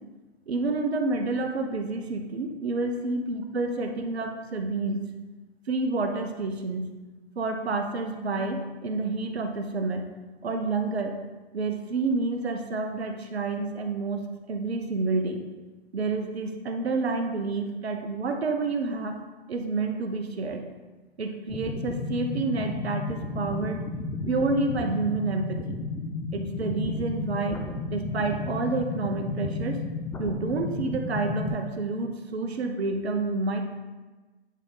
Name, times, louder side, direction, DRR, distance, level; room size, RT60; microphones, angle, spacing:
voice 1, 0.5-5.0 5.7-6.9 7.4-10.0 10.4-11.2 11.5-15.4 15.9-19.2 19.5-20.6 21.2-23.8 24.3-25.8 26.3-29.8 30.2-33.6, right 3 dB, 75° right, 5 dB, 0.9 m, -29 dB
sound 1, 21.5-31.5, left 3 dB, 5° left, 0.5 m, -33 dB
10.5 x 3.5 x 4.0 m, 1.2 s
hypercardioid pair, 120°, 32 cm